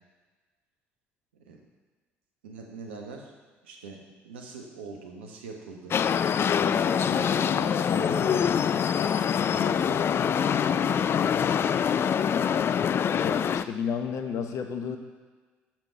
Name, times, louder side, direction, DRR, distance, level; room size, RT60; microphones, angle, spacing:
voice 1, 2.4-3.3 3.6-6.0 6.6-8.7 9.5-10.1, right 4 dB, 85° right, 1 dB, 1.2 m, -42 dB
sound 1, 5.9-13.6, left 8 dB, 40° left, 0.3 m, -24 dB
voice 2, 7.9-8.2 13.2-15.0, left 7 dB, 60° left, 6 dB, 1.0 m, -31 dB
7.2 x 6.0 x 6.8 m, 1.4 s
hypercardioid pair, 55°, 6 cm